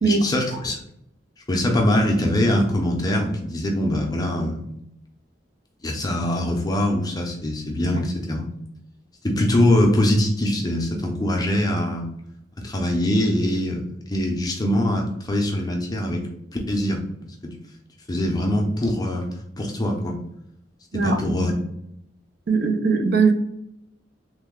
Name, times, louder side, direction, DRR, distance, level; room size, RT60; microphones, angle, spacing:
voice 1, 0.0-0.8 1.5-4.7 5.8-8.5 9.2-12.1 12.6-16.2 16.7-17.0 17.4-17.5 18.1-19.2 19.6-20.2 20.9-21.5, left 1 dB, 20° left, 1 dB, 0.5 m, -23 dB
voice 2, 22.5-23.3, right 4 dB, 55° right, 5 dB, 0.5 m, -19 dB
3.1 x 2.1 x 3.6 m, 0.76 s
head